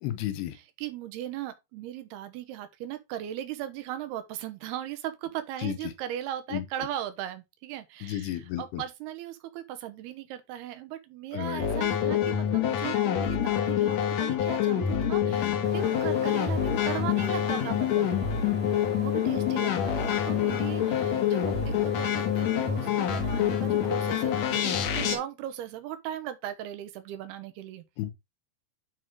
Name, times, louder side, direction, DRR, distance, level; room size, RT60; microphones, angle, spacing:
voice 1, 0.0-0.6 5.6-5.8 6.5-6.6 8.0-8.8 11.3-11.6 15.3-15.5 28.0-28.1, left 13 dB, 85° left, 3.1 m, -32 dB
voice 2, 0.5-18.1 18.9-27.8, right 12 dB, 85° right, 3.0 m, -38 dB
sound 1, 11.6-25.2, left 10 dB, 60° left, 2.0 m, -26 dB
sound 2, 15.6-25.2, equal, 5° right, 1.1 m, -41 dB
9.2 x 4.6 x 3.7 m
omnidirectional pair, 4.5 m